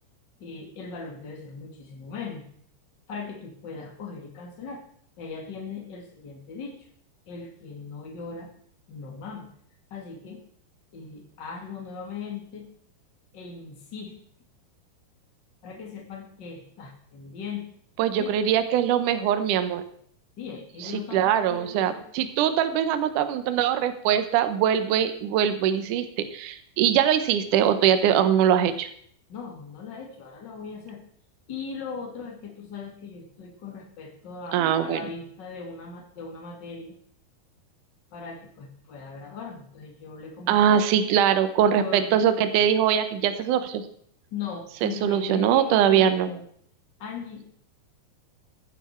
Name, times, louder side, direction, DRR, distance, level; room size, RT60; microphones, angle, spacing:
voice 1, 0.4-2.5 3.1-4.8 5.2-6.9 7.3-8.5 8.9-9.5 9.9-10.4 10.9-12.7 13.3-14.2 15.6-17.7 18.2-18.4 20.4-22.0 29.3-31.0 31.5-37.0 38.1-40.9 41.7-42.2 44.3-46.4 47.0-47.5, left 5 dB, 35° left, 2 dB, 2.1 m, -39 dB
voice 2, 18.0-19.8 20.8-26.1 26.3-28.9 34.5-35.0 40.5-43.8 44.8-46.3, right 9 dB, 90° right, 9 dB, 1.8 m, -22 dB
15.0 x 9.7 x 4.5 m, 0.64 s
omnidirectional pair, 5.0 m